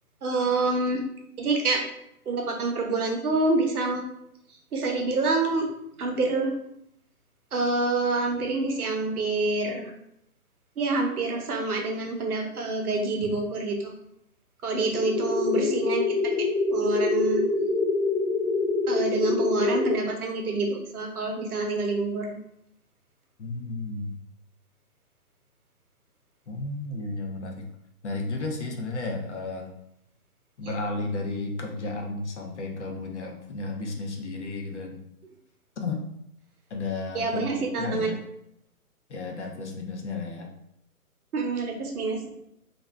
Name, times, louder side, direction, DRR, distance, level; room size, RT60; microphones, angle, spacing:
voice 1, 0.2-1.0 1.4-1.8 2.3-4.0 4.7-5.7 6.0-6.5 7.5-9.9 10.8-13.9 14.6-17.4 18.9-22.4 37.1-38.1 41.3-42.3, right 3 dB, 75° right, 2 dB, 0.8 m, -27 dB
sound 1, 15.0-20.0, left 3 dB, 75° left, 1.0 m, -25 dB
voice 2, 23.4-24.1 26.5-27.7 28.0-29.7 30.6-35.0 35.8-36.0 36.7-38.2 39.1-40.5, left 3 dB, 50° left, 2 dB, 0.5 m, -33 dB
2.5 x 2.2 x 3.1 m, 0.76 s
hypercardioid pair, 155°, 46 cm